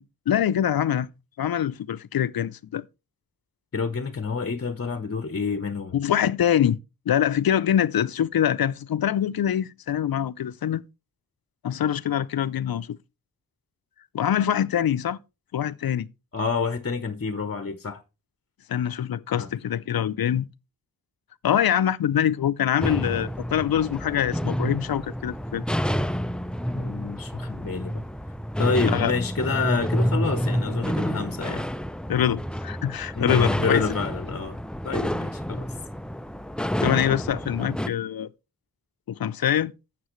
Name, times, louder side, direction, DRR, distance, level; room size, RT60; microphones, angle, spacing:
voice 1, 0.3-1.1 1.4-2.8 5.9-6.8 7.1-10.8 11.6-13.0 14.1-15.2 15.5-16.1 18.7-20.5 21.4-25.6 28.9-29.1 32.1-33.8 36.8-38.3 39.1-39.7, left 10 dB, 75° left, 0.6 m, -24 dB
voice 2, 3.7-6.0 16.3-18.0 19.3-19.5 26.7-28.0 28.6-31.7 33.2-34.6 34.8-35.7, left 4 dB, 40° left, 0.9 m, -28 dB
sound 1, 22.8-37.9, equal, 5° left, 0.4 m, -29 dB
11.5 x 7.5 x 3.1 m
cardioid pair, 60°, 36 cm